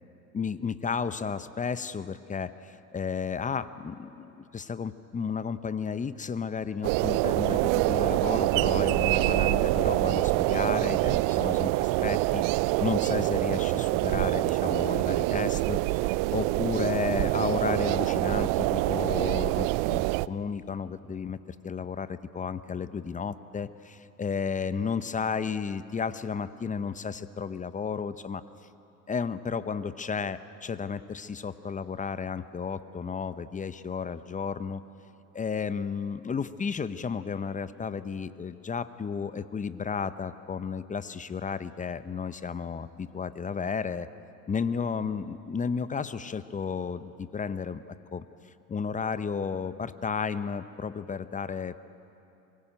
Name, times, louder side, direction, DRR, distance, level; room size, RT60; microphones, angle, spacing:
voice 1, 0.3-12.4 12.8-28.4 29.1-34.8 35.3-44.1 44.5-47.8 48.1-48.3 48.7-51.8, left 6 dB, 15° left, 14 dB, 0.7 m, -33 dB
sound 1, 6.8-20.3, right 20 dB, 45° right, 0.5 m, -25 dB
24.5 x 16.5 x 9.1 m, 2.9 s
hypercardioid pair, 85°, 47 cm